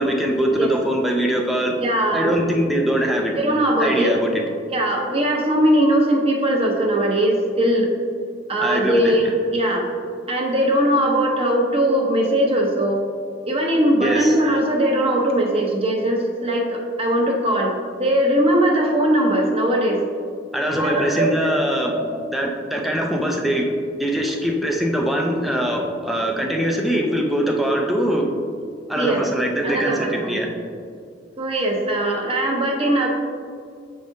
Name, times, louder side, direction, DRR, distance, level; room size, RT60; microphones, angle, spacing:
voice 1, 0.0-1.8 2.1-3.3 3.8-4.4 8.6-9.1 14.0-14.4 20.5-22.0 22.3-23.7 24.0-28.3 28.9-30.5, equal, ahead, 0 dB, 0.4 m, -22 dB
voice 2, 1.8-2.3 3.3-4.1 4.7-7.9 8.5-9.9 10.3-13.0 13.5-20.0 20.8-21.5 21.9-22.2 28.9-29.2 29.6-30.4 31.4-33.1, right 1 dB, 35° right, 0 dB, 0.9 m, -20 dB
7.3 x 5.0 x 2.6 m, 2.2 s
head